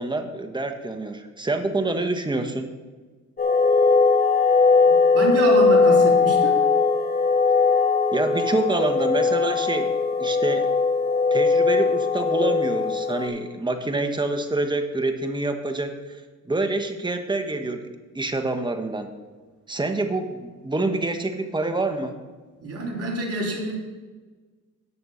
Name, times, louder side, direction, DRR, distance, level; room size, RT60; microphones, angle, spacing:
voice 1, 0.0-2.7 8.1-9.9 10.2-10.7 11.3-15.9 16.4-19.1 19.7-22.2, right 2 dB, 15° right, 6 dB, 1.4 m, -27 dB
sound 1, 3.4-13.3, left 4 dB, 30° left, 3.4 m, -19 dB
voice 2, 4.9-6.6 22.6-23.8, right 2 dB, 50° right, -2 dB, 3.7 m, -27 dB
18.0 x 6.7 x 4.2 m, 1.4 s
cardioid pair, 90°, 30 cm